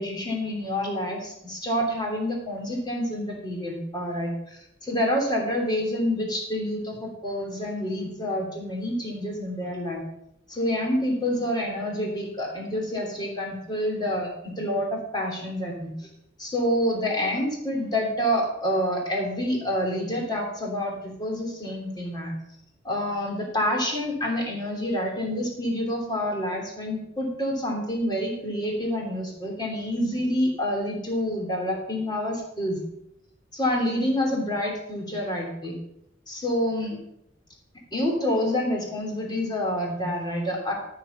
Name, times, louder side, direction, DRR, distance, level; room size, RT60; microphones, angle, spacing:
voice 1, 0.0-10.0 10.5-15.9 16.4-22.3 22.8-32.8 33.5-35.7 36.3-37.0 37.9-40.7, left 1 dB, 20° left, -1 dB, 3.2 m, -28 dB
13.5 x 6.7 x 5.6 m, 0.77 s
head